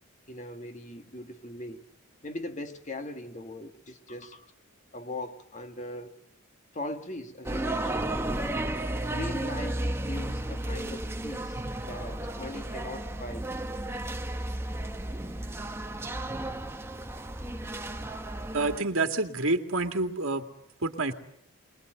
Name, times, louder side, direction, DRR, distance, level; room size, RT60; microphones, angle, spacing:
voice 1, 0.3-1.9 2.2-4.5 4.9-6.1 6.7-8.2 9.1-13.5, left 1 dB, 35° left, 6 dB, 1.9 m, -40 dB
sound 1, 7.4-18.8, right 1 dB, 10° right, 1.1 m, -33 dB
voice 2, 18.5-20.4 20.8-21.1, right 2 dB, 75° right, 5 dB, 2.3 m, -28 dB
23.5 x 21.5 x 8.0 m, 0.69 s
head